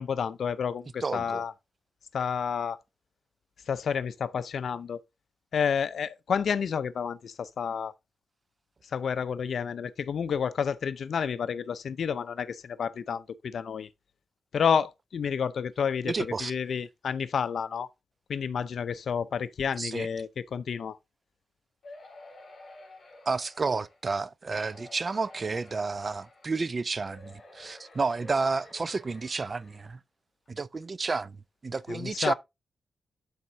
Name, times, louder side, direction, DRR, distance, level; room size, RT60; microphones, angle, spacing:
voice 1, 0.0-1.5 2.1-2.8 3.7-5.0 5.5-7.9 8.9-13.9 14.5-17.9 18.3-21.0 31.9-32.3, left 7 dB, 70° left, 0.5 m, -30 dB
voice 2, 1.0-1.4 16.0-16.5 19.8-20.1 23.3-30.0 30.5-31.4 31.6-32.3, right 4 dB, 35° right, 0.4 m, -31 dB
sound 1, 21.8-24.0 24.5-26.6 27.0-29.9 30.5-30.6 30.8-30.9, left 2 dB, 50° left, 3.5 m, -51 dB
12.5 x 4.2 x 2.6 m
cardioid pair, 95°, 0 cm